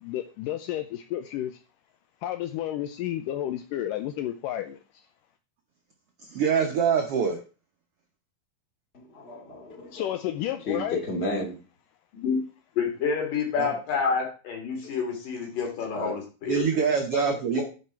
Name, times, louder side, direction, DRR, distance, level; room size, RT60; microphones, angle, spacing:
voice 1, 0.0-1.6 2.2-4.8 9.9-11.0, left 12 dB, 80° left, 8 dB, 2.0 m, -31 dB
voice 2, 6.2-7.4 13.6-13.7 16.5-17.6, right 6 dB, 80° right, 4 dB, 1.3 m, -24 dB
voice 3, 8.9-11.6 15.9-16.1, left 1 dB, 20° left, 2 dB, 2.0 m, -34 dB
voice 4, 12.8-16.7 17.1-17.2 17.5-17.6, left 6 dB, 65° left, 1 dB, 4.3 m, -28 dB
10.5 x 6.1 x 4.5 m, 0.34 s
omnidirectional pair, 4.2 m